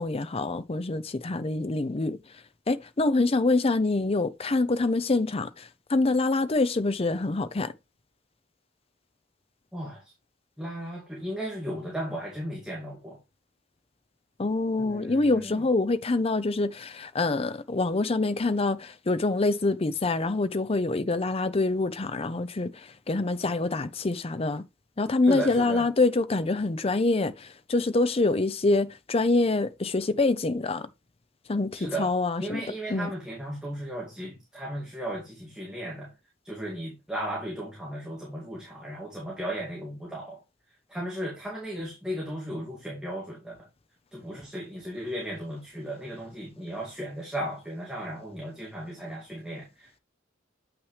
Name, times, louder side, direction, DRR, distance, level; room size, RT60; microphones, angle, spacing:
voice 1, 0.0-2.2 2.7-7.7 14.4-24.6 25.0-30.9 31.5-32.6 32.9-33.1, left 2 dB, 30° left, 0.6 m, -26 dB
voice 2, 9.7-10.1 10.6-13.2 14.8-15.7 25.2-25.9 31.7-32.1 32.4-36.1 36.4-40.4 40.9-43.7 44.1-50.0, right 1 dB, 5° right, 2.2 m, -36 dB
7.9 x 5.9 x 3.2 m
head